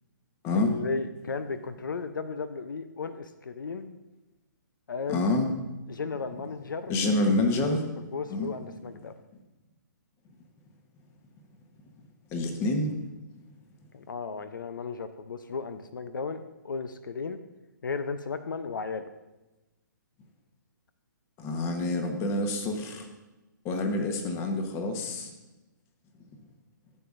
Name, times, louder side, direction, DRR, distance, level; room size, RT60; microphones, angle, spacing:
voice 1, 0.6-4.0 4.9-5.2 5.9-6.9 8.1-9.1 13.9-17.4 17.8-19.0, left 4 dB, 85° left, 11 dB, 0.6 m, -35 dB
voice 2, 5.1-5.5 6.9-7.8 8.3-8.5 12.3-13.0 21.4-23.1 23.6-25.3, left 2 dB, 25° left, 4 dB, 1.1 m, -27 dB
13.5 x 7.0 x 2.5 m, 1.0 s
hypercardioid pair, 145°, 11 cm